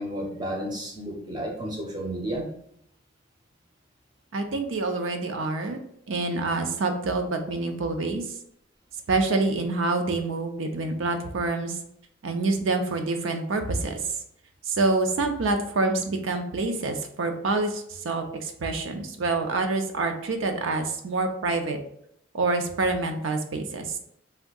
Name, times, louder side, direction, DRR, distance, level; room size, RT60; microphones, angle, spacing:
voice 1, 0.0-2.5, equal, 20° right, 0 dB, 0.7 m, -32 dB
voice 2, 4.3-5.8 6.1-8.2 9.1-11.8 12.2-14.0 14.7-21.8 22.3-23.9, right 3 dB, 85° right, 5 dB, 0.5 m, -27 dB
3.5 x 2.6 x 2.3 m, 0.72 s
head